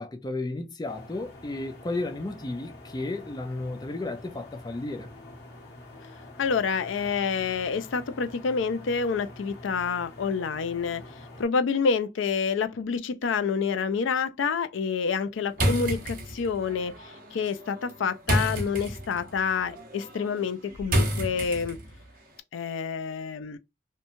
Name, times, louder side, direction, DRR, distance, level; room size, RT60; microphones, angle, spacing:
voice 1, 0.0-5.1, left 2 dB, 20° left, 0.4 m, -33 dB
sound 1, 0.9-11.5, left 2 dB, 55° left, 0.9 m, -47 dB
voice 2, 6.4-11.0 11.4-16.9 17.3-21.8 22.5-23.6, left 5 dB, 90° left, 0.4 m, -28 dB
sound 2, 15.5-22.0, equal, 45° right, 0.8 m, -30 dB
2.9 x 2.2 x 2.6 m
head